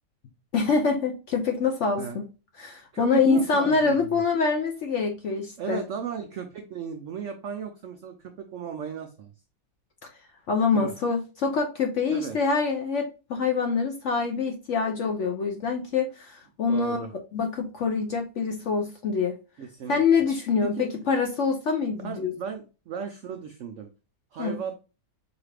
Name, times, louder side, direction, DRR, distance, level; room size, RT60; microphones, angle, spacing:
voice 1, 0.5-2.3 2.6-5.8 10.5-17.0 17.3-19.4 19.9-22.3 24.4-24.6, left 5 dB, 65° left, 0.7 m, -25 dB
voice 2, 2.9-4.2 5.6-9.3 10.7-10.9 12.1-12.4 16.7-17.1 19.6-20.3 20.6-20.9 22.0-23.9 24.3-24.7, right 7 dB, 90° right, 0.6 m, -35 dB
4.9 x 2.4 x 3.2 m
omnidirectional pair, 1.8 m